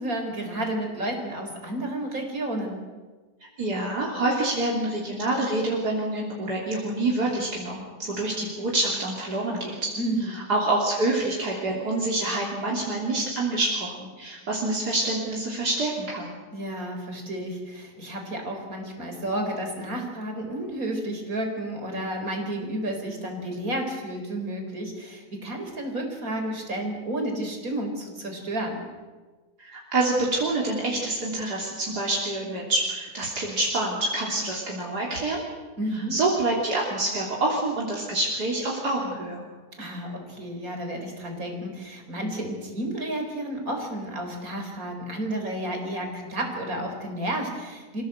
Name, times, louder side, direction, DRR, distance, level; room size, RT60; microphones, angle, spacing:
voice 1, 0.0-2.8 10.0-10.4 16.5-28.8 35.8-36.2 39.8-48.0, right 1 dB, 55° right, 3 dB, 4.7 m, -31 dB
voice 2, 3.6-9.9 10.3-16.3 29.6-35.4 35.9-39.4, right 2 dB, 75° right, -3 dB, 3.8 m, -27 dB
27.0 x 16.5 x 8.0 m, 1.3 s
omnidirectional pair, 1.7 m